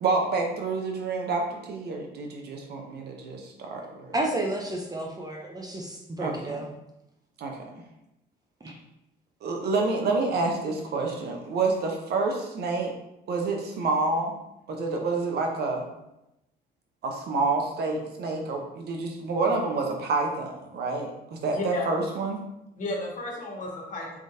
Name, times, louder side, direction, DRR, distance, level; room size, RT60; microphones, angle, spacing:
voice 1, 0.0-4.1 6.2-6.3 7.4-7.7 9.4-12.9 13.3-14.3 14.7-15.8 17.0-22.4, right 3 dB, 60° right, 2 dB, 0.9 m, -28 dB
voice 2, 4.1-6.7 8.6-8.8, right 1 dB, 20° right, 0 dB, 0.7 m, -31 dB
voice 3, 21.5-22.0 22.8-24.2, left 2 dB, 45° left, -2 dB, 1.6 m, -33 dB
4.6 x 3.7 x 2.8 m, 0.89 s
cardioid pair, 90°, 18 cm